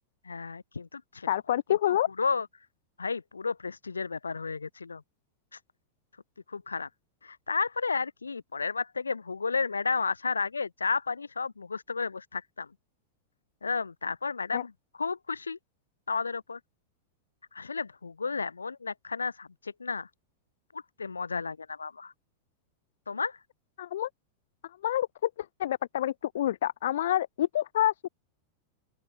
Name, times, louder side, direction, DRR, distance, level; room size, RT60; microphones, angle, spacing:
voice 1, 0.2-1.3 1.7-2.5 3.0-5.0 6.5-6.9 7.2-12.7 13.6-14.7 15.0-15.6 16.1-16.6 17.5-20.1 20.7-22.1 23.1-23.4, left 4 dB, 75° left, 1.8 m, -32 dB
voice 2, 1.3-2.1 14.5-14.6 23.8-24.1 24.8-28.1, left 12 dB, 60° left, 0.4 m, -28 dB
open air
figure-of-eight pair, 90°, 0 cm